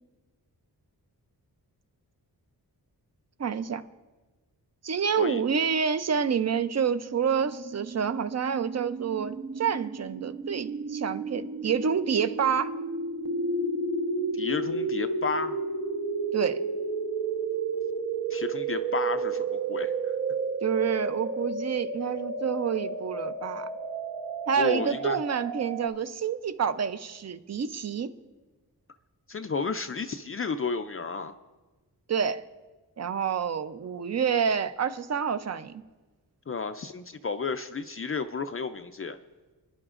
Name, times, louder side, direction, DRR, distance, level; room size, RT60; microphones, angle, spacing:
voice 1, 3.4-3.8 4.8-12.7 16.3-16.6 20.6-23.7 24.5-28.1 32.1-32.4 33.0-35.8, right 7 dB, 40° right, 12 dB, 0.6 m, -28 dB
sound 1, 7.0-25.9, right 3 dB, 60° right, 1.1 m, -32 dB
voice 2, 14.3-15.6 18.3-20.1 24.6-25.2 29.3-31.4 36.5-39.2, left 4 dB, 35° left, 9 dB, 0.4 m, -32 dB
28.5 x 10.5 x 2.5 m, 1.3 s
wide cardioid pair, 125°, 39 cm